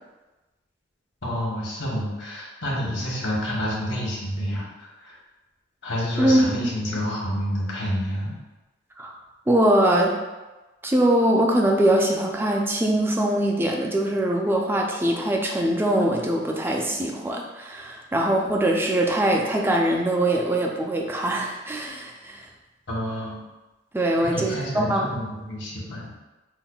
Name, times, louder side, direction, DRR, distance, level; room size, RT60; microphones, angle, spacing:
voice 1, 1.2-5.1 5.8-8.3 22.9-23.4 24.2-26.0, equal, 80° left, -4 dB, 1.0 m, -29 dB
voice 2, 9.5-10.1 10.8-22.5 23.9-25.1, right 1 dB, 10° right, 0 dB, 0.4 m, -22 dB
5.5 x 2.2 x 2.3 m, 1.1 s
head